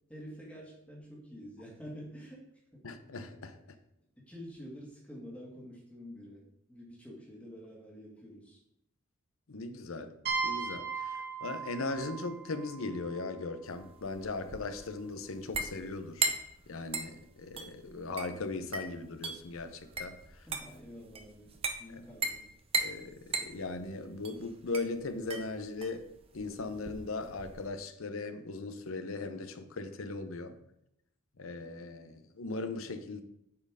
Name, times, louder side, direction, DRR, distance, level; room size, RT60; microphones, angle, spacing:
voice 1, 0.1-2.5 2.7-2.8 4.3-6.4 6.7-8.6 20.3-22.5, equal, 5° left, -3 dB, 1.8 m, -48 dB
voice 2, 2.8-3.5 9.5-10.1 10.4-16.3 16.7-20.2 22.8-26.0 26.3-30.6 31.4-33.2, left 3 dB, 70° left, 9 dB, 0.7 m, -38 dB
sound 1, 10.3-13.9, right 5 dB, 45° right, 1.7 m, -37 dB
sound 2, 13.7-27.7, right 3 dB, 25° right, 0.6 m, -38 dB
8.5 x 4.5 x 4.9 m, 0.79 s
head